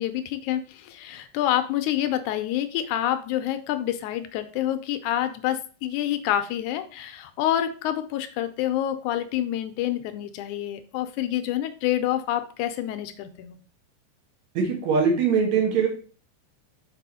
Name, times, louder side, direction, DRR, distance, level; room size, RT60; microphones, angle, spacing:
voice 1, 0.0-13.6, left 12 dB, 80° left, 10 dB, 2.0 m, -27 dB
voice 2, 14.6-15.9, right 5 dB, 65° right, 1 dB, 2.6 m, -22 dB
6.1 x 4.9 x 4.1 m, 0.40 s
omnidirectional pair, 3.6 m